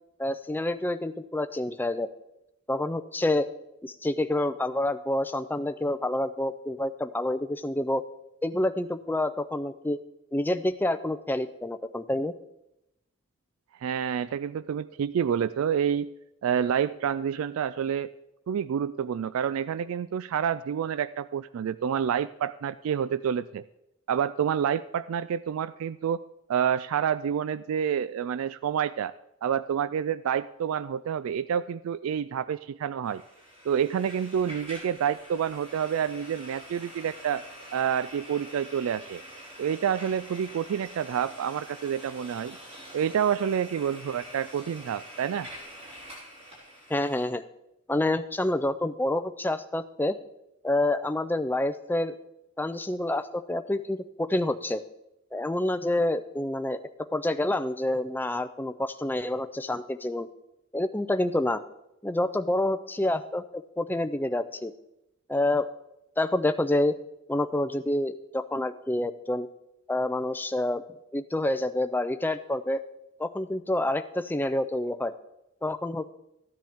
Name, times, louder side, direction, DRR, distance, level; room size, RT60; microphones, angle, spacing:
voice 1, 0.2-2.1 2.7-3.5 3.8-8.0 8.4-10.0 10.3-12.3 46.9-47.5 47.9-50.2 50.6-52.1 52.6-54.8 55.3-56.8 57.1-60.3 60.7-61.6 62.0-63.4 63.8-64.7 65.3-65.7 66.2-66.9 67.3-69.5 69.9-70.8 71.1-72.8 73.2-75.1 75.6-76.1, left 1 dB, 10° left, 9 dB, 0.4 m, -28 dB
voice 2, 13.8-16.1 16.4-18.1 18.5-23.6 24.1-26.2 26.5-29.1 29.4-33.2 33.7-37.4 37.7-39.2 39.6-42.6 42.9-45.5, right 8 dB, 85° right, 16 dB, 0.3 m, -28 dB
sound 1, 33.0-47.2, equal, 30° right, 5.3 m, -46 dB
15.0 x 10.0 x 3.5 m, 0.88 s
head